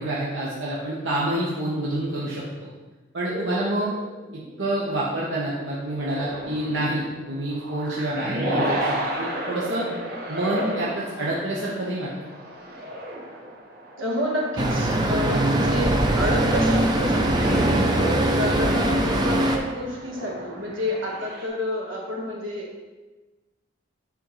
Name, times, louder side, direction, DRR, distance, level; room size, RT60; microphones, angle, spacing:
voice 1, 0.0-2.7 3.1-3.9 4.6-9.9 10.3-12.1, right 1 dB, 70° right, -6 dB, 1.0 m, -27 dB
sound 1, 3.3-4.9 5.8-21.5, right 1 dB, 50° right, 1.1 m, -33 dB
voice 2, 14.0-17.5 18.0-22.8, equal, 85° right, -2 dB, 1.4 m, -29 dB
Traffic noise roadway noise, 14.6-19.6, right 1 dB, 20° right, 0.5 m, -22 dB
10.5 x 3.7 x 3.1 m, 1.2 s
head